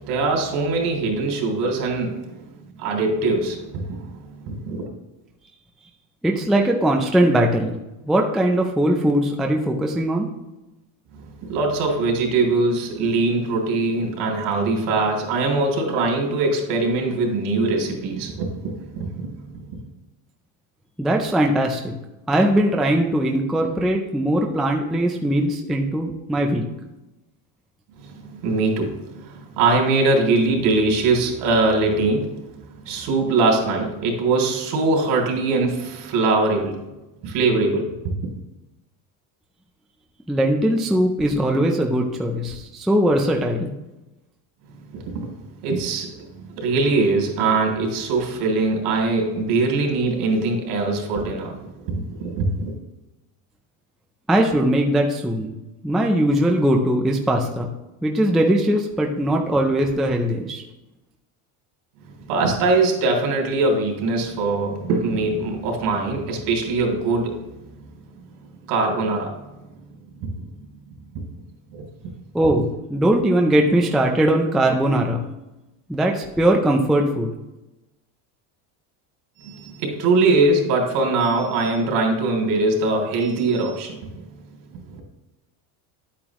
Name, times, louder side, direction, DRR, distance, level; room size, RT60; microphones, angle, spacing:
voice 1, 0.0-2.4 2.8-4.8 11.1-19.7 28.0-36.9 37.2-38.1 44.9-45.3 45.6-52.7 62.3-67.5 68.7-69.7 70.2-70.3 71.1-71.3 71.7-71.8 79.4-84.2 84.9-85.0, right 3 dB, 65° right, 3.2 m, -22 dB
voice 2, 6.2-7.8 8.0-10.3 21.0-21.9 22.3-26.6 40.3-43.7 54.3-55.5 55.8-57.7 58.0-60.6 72.3-75.2 75.9-77.3, right 1 dB, ahead, 0.3 m, -20 dB
10.5 x 8.6 x 3.0 m
cardioid pair, 155°, 44 cm